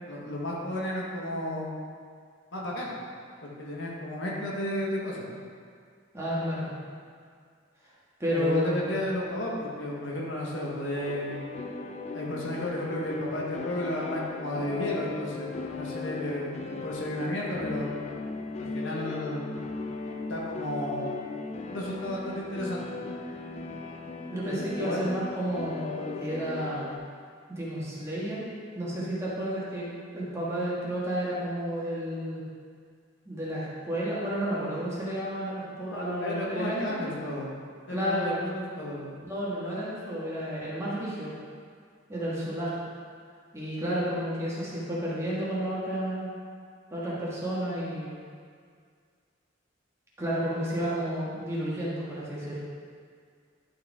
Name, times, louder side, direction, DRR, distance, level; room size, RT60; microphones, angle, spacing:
voice 1, 0.1-1.7 2.5-3.0 3.4-5.3 8.3-11.5 12.1-17.9 18.6-19.5 20.2-21.1 21.7-23.0 24.5-25.0 35.9-37.5 37.9-39.1, left 1 dB, 65° left, -3 dB, 1.3 m, -33 dB
voice 2, 6.1-6.7 8.2-8.9 24.3-26.9 27.5-28.5 28.7-29.9 30.1-32.4 33.2-37.0 37.9-38.5 39.2-41.3 42.1-42.8 43.5-46.3 46.9-48.1 50.2-52.6, equal, 15° right, -8 dB, 1.7 m, -31 dB
sound 1, 10.9-27.0, left 4 dB, 35° left, 0.4 m, -37 dB
11.0 x 4.8 x 3.6 m, 2.1 s
head